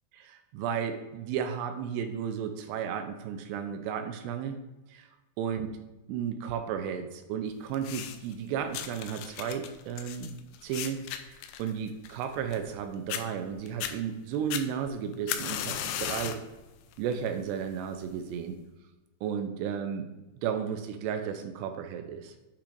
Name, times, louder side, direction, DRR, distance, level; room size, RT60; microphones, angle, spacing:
voice 1, 0.1-4.6 4.9-5.1 5.4-5.8 6.1-10.4 10.6-16.4 17.0-18.6 19.2-20.1 20.4-22.4, right 8 dB, 80° right, 7 dB, 2.6 m, -33 dB
sound 1, 7.7-8.3 8.7-12.8 13.1-13.2 13.7-13.9 14.5-16.5 16.9-17.3 18.1-18.2, left 10 dB, 85° left, 2.9 m, -36 dB
8.3 x 5.8 x 2.6 m, 1.1 s
omnidirectional pair, 5.1 m